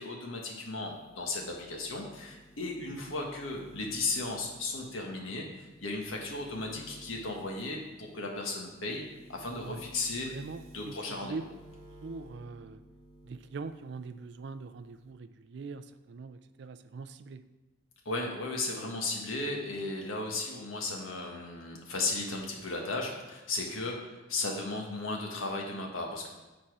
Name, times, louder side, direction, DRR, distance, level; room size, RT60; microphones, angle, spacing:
voice 1, 0.0-10.3 10.7-11.3 18.0-26.3, left 2 dB, 85° left, 0 dB, 1.4 m, -35 dB
sound 1, 0.8-13.8 14.1-15.1, right 1 dB, 85° right, 1.1 m, -55 dB
voice 2, 10.2-11.5 12.0-12.8 13.2-17.4, right 4 dB, 55° right, 12 dB, 0.4 m, -42 dB
8.8 x 4.3 x 4.7 m, 1.1 s
head